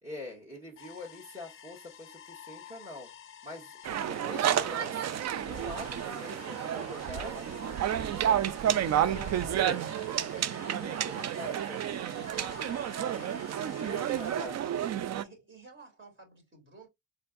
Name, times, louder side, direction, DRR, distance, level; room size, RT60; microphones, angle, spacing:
voice 1, 0.0-3.1 3.4-3.7 4.0-5.2 5.5-7.5 7.9-9.9 10.6-12.1 13.7-14.6, left 1 dB, 20° right, 2.0 m, -45 dB
sound 1, 0.8-14.5, left 10 dB, 45° left, 0.7 m, -50 dB
sound 2, 3.9-15.2, right 10 dB, 60° right, 0.5 m, -31 dB
voice 2, 13.2-13.5 13.9-14.8 15.2-16.9, right 3 dB, 40° right, 3.2 m, -52 dB
4.3 x 4.3 x 2.6 m
cardioid pair, 90°, 30 cm